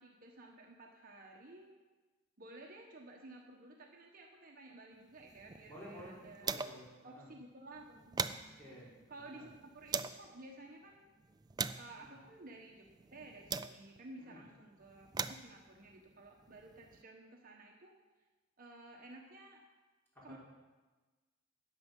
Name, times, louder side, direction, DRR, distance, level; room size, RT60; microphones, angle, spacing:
voice 1, 0.0-1.8 2.4-6.6 7.0-8.5 9.1-11.0 11.8-12.8 13.1-17.9 18.6-19.6 20.2-20.4, right 2 dB, 45° right, 0 dB, 1.2 m, -54 dB
sound 1, 5.2-7.0 7.3-7.4 7.7-10.3 10.9-14.1 14.8-17.0, right 6 dB, 20° right, 0.3 m, -42 dB
voice 2, 5.7-7.3 8.6-8.9 9.2-9.5 11.9-12.1 14.2-14.4 20.3-20.4, equal, 10° left, -8 dB, 4.7 m, -53 dB
14.0 x 9.1 x 5.4 m, 1.3 s
head